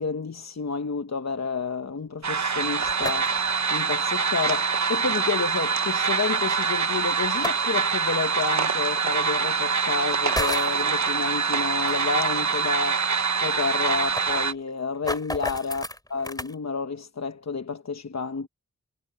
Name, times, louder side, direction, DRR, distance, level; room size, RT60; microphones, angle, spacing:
voice 1, 0.0-13.1 13.4-15.8 16.1-18.5, left 5 dB, 60° left, 1.1 m, -30 dB
sound 1, 2.2-14.5, right 5 dB, 65° right, 1.2 m, -25 dB
sound 2, 2.7-3.5 5.1-5.2 7.2-7.8 9.0-9.1 10.1-10.8 11.9-12.0 12.3-12.4 12.8-12.9 13.1-13.2 13.7-16.5, left 1 dB, 10° left, 3.5 m, -33 dB
wide cardioid pair, 70°, 31 cm